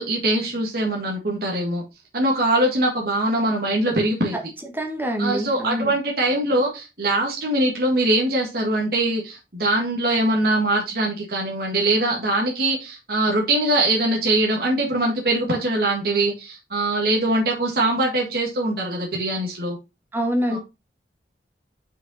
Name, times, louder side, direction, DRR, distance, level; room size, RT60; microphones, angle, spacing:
voice 1, 0.0-1.8 2.1-4.3 5.2-19.8 20.5-20.6, right 1 dB, 55° right, -1 dB, 1.8 m, -22 dB
voice 2, 4.7-5.9 20.1-20.6, equal, 10° right, 3 dB, 1.3 m, -25 dB
5.5 x 5.3 x 4.0 m, 0.26 s
head